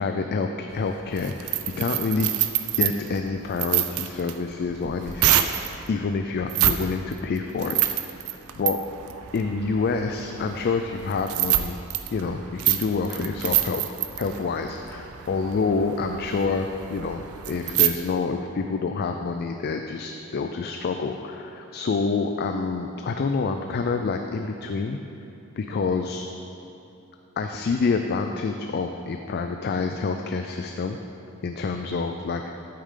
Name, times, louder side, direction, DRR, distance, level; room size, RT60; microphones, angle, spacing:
voice 1, 0.0-2.3 2.7-5.6 5.9-7.8 8.6-8.8 9.3-11.8 12.1-13.8 14.2-25.0 25.6-26.2 27.4-31.0 31.4-32.4, left 4 dB, 45° left, 5 dB, 0.3 m, -27 dB
sound 1, 0.7-5.7 6.4-6.8 7.1-17.9, right 13 dB, 65° right, 0.5 m, -27 dB
8.7 x 8.3 x 3.7 m, 2.8 s
head